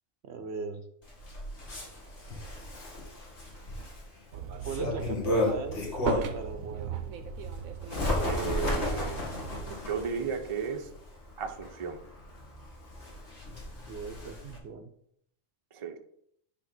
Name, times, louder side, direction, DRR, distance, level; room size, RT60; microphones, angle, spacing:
voice 1, 0.2-0.9 4.6-7.0 13.9-14.9, right 4 dB, 60° right, 8 dB, 0.9 m, -39 dB
Bird, 1.0-6.5 6.9-14.6, left 1 dB, 55° left, 2.1 m, -34 dB
sound 1, 4.3-9.7, right 7 dB, 90° right, 1.2 m, -38 dB
voice 2, 8.2-9.2 9.9-10.9 11.4-12.0 15.7-16.0, right 6 dB, 30° right, 5 dB, 0.6 m, -34 dB
10.0 x 3.4 x 6.0 m, 0.71 s
omnidirectional pair, 1.4 m